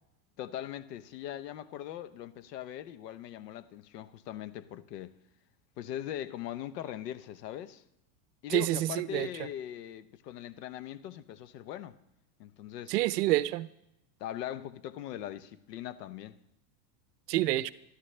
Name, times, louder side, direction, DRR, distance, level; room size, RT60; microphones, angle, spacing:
voice 1, 0.4-5.2 5.8-7.8 8.4-12.0 12.4-12.9 14.2-16.4, left 11 dB, 70° left, 1.0 m, -40 dB
voice 2, 8.5-9.3 12.9-13.7 17.3-17.7, right 16 dB, 70° right, 0.8 m, -28 dB
25.5 x 11.5 x 3.3 m
supercardioid pair, 160°, 49 cm